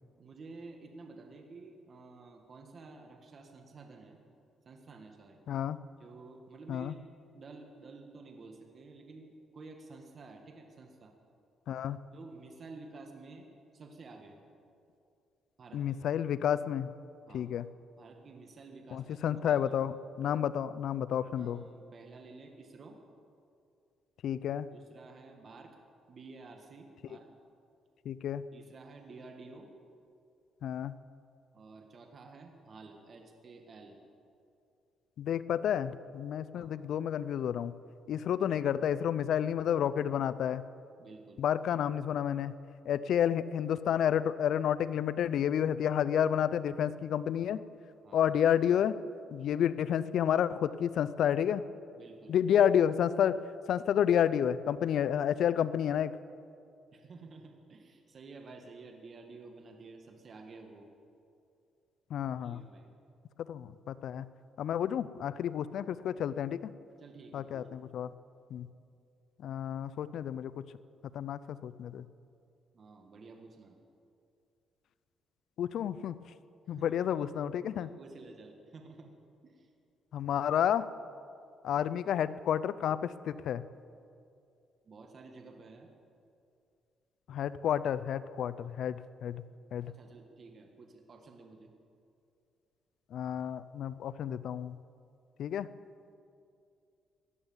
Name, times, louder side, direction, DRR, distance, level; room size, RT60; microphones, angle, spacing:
voice 1, 0.2-4.2 4.7-5.4 6.0-7.0 7.3-11.1 12.1-13.5 13.7-14.4 15.6-15.8 17.3-17.5 18.0-19.8 21.4-23.0 24.7-25.8 26.1-27.3 28.5-29.7 31.5-34.0 36.5-36.8 41.0-41.4 48.0-48.3 52.0-52.4 56.9-60.9 62.4-62.9 67.0-67.7 72.7-73.8 76.7-77.0 77.8-79.1 79.4-79.7 84.9-85.9 89.8-91.7, right 3 dB, 45° right, 3 dB, 1.7 m, -51 dB
voice 2, 5.5-5.8 6.7-6.9 11.7-12.0 15.7-16.9 17.3-17.7 18.9-21.6 24.2-24.7 28.1-28.4 30.6-30.9 35.2-37.7 38.1-40.6 41.4-42.5 42.9-47.6 48.1-48.9 49.3-51.6 52.3-53.4 53.7-56.1 62.1-62.6 63.5-64.3 64.6-66.7 67.3-68.1 68.5-68.7 69.4-70.5 71.1-72.1 75.6-76.2 76.7-77.9 80.1-80.9 81.6-83.6 87.3-89.4 89.7-89.9 93.1-94.8 95.4-95.7, left 9 dB, 70° left, 14 dB, 0.5 m, -30 dB
17.0 x 11.0 x 7.3 m, 2.5 s
cardioid pair, 90°, 0 cm